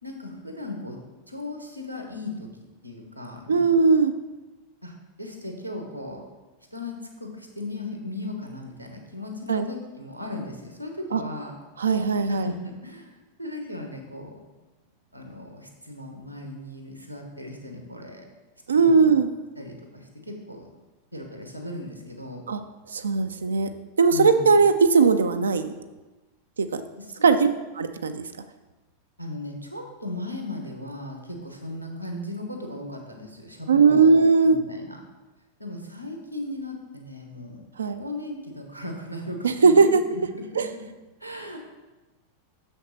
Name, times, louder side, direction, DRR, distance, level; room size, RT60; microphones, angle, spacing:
voice 1, 0.0-1.0 1.3-2.5 2.8-3.7 4.8-6.2 6.7-11.5 12.3-14.4 15.1-18.3 18.7-19.1 19.5-20.7 21.1-22.4 24.1-24.6 27.0-27.4 29.2-34.1 34.4-35.0 35.6-37.6 38.0-40.2 40.5-40.6 41.2-41.6, left 1 dB, 90° right, 3 dB, 1.1 m, -37 dB
voice 2, 3.5-4.1 9.5-9.6 11.1-11.2 11.8-12.5 18.7-19.3 22.5-22.6 22.9-23.7 24.0-25.7 26.6-26.8 27.2-27.5 27.8-28.2 33.7-34.6 37.8-38.0 39.4-40.0 40.6-40.7, right 4 dB, 70° right, 8 dB, 0.4 m, -19 dB
6.5 x 5.9 x 4.0 m, 1.1 s
figure-of-eight pair, 90°, 0 cm